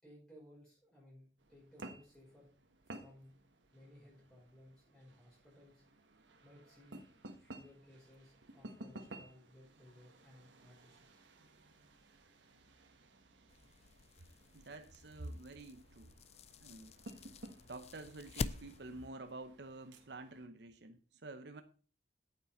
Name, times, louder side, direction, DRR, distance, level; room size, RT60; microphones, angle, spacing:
voice 1, 0.0-2.5 2.8-3.3 3.7-5.8 6.4-7.0 7.4-11.2, left 1 dB, 5° left, 5.6 m, -60 dB
sound 1, 1.4-20.5, right 2 dB, 90° right, 1.4 m, -56 dB
sound 2, 13.5-19.1, left 4 dB, 35° left, 0.4 m, -46 dB
voice 2, 14.5-16.1 16.6-17.0 17.7-21.6, right 2 dB, 65° right, 0.8 m, -49 dB
9.1 x 8.3 x 4.4 m
head